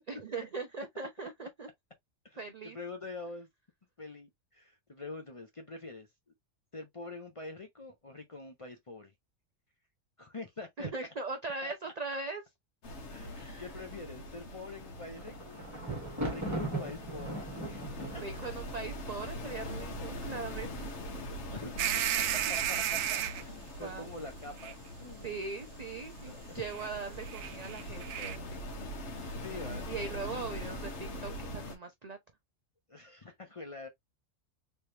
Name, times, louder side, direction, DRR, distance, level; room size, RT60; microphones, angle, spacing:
voice 1, 0.1-1.7 2.4-2.8 10.8-12.4 13.4-13.7 18.2-20.9 23.8-24.1 25.2-28.7 29.9-32.2, right 4 dB, 55° right, 0.4 m, -40 dB
voice 2, 2.7-3.5 4.0-6.1 6.7-9.1 10.2-10.9 11.6-11.7 13.1-15.6 16.2-17.8 18.1-18.5 21.5-22.1 22.5-25.3 26.2-26.6 29.4-31.4 32.9-33.9, left 3 dB, 35° left, 0.6 m, -45 dB
sound 1, 12.8-31.8, left 1 dB, 60° left, 1.3 m, -43 dB
Thunder, 14.8-20.0 20.7-21.2 21.5-21.6, right 1 dB, 15° right, 1.3 m, -39 dB
sound 2, 21.8-23.4 24.6-24.7 26.7-26.9 27.2-28.4, right 11 dB, 85° right, 1.0 m, -33 dB
3.3 x 3.1 x 2.6 m
omnidirectional pair, 1.3 m